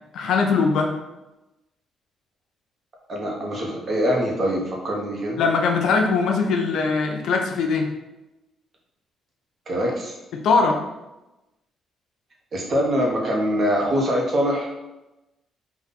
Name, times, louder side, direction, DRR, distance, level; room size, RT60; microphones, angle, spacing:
voice 1, 0.1-0.9 5.4-7.9 10.3-10.8, left 4 dB, 75° left, 3 dB, 0.6 m, -21 dB
voice 2, 3.1-5.4 9.7-10.1 12.5-14.7, equal, 45° right, -1 dB, 1.2 m, -23 dB
4.0 x 2.6 x 4.1 m, 0.99 s
cardioid pair, 90°, 0 cm